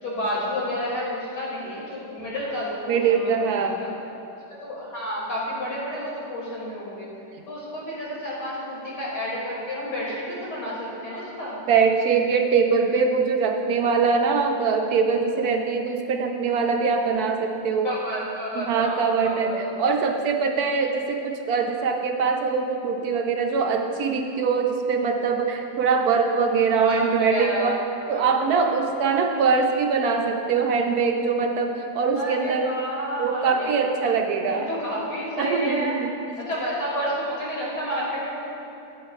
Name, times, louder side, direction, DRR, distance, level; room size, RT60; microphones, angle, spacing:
voice 1, 0.0-3.9 4.6-7.1 7.5-11.6 17.8-19.6 26.8-27.8 28.1-28.4 28.6-28.8 32.1-33.7 34.5-35.9 36.4-38.3, equal, 75° left, -6 dB, 3.1 m, -30 dB
voice 2, 2.9-3.8 11.7-17.9 18.5-27.8 28.1-32.7 33.2-34.7 35.4-36.1, right 5 dB, 70° right, 3 dB, 1.0 m, -23 dB
14.5 x 8.2 x 2.4 m, 2.8 s
omnidirectional pair, 1.8 m